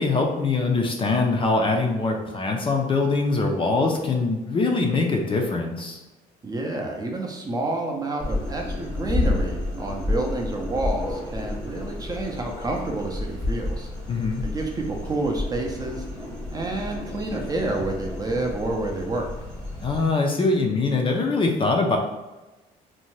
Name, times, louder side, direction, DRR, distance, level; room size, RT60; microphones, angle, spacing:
voice 1, 0.0-6.0 14.1-14.4 19.8-22.0, left 3 dB, 30° left, 1 dB, 0.4 m, -23 dB
voice 2, 6.4-13.9 14.4-16.0 16.5-19.3, right 2 dB, 20° right, 1 dB, 0.5 m, -29 dB
sound 1, 8.2-20.1, left 2 dB, 5° left, 0.8 m, -31 dB
2.6 x 2.1 x 3.1 m, 1.1 s
cardioid pair, 110°, 17 cm